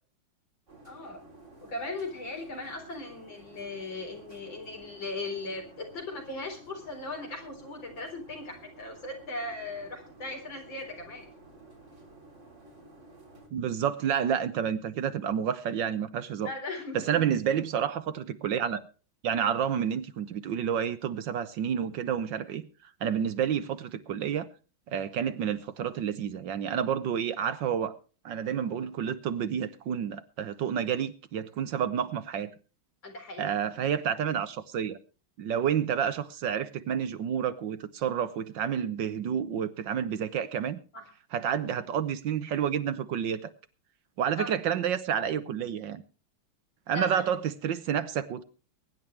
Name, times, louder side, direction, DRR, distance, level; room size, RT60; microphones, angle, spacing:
sound 1, 0.7-13.5, right 2 dB, 35° right, 3.6 m, -52 dB
voice 1, 0.8-1.2 1.6-11.3 16.4-17.2 33.0-33.6 40.9-41.0 44.4-44.5 46.9-47.2, left 2 dB, 65° left, 4.8 m, -38 dB
voice 2, 13.5-16.5 16.9-18.8 19.2-22.6 23.0-24.5 24.9-27.9 28.2-32.5 33.4-35.0 35.4-40.8 41.3-43.5 44.2-46.0 46.9-48.4, right 8 dB, 65° right, 1.5 m, -29 dB
23.0 x 10.5 x 3.2 m
omnidirectional pair, 2.2 m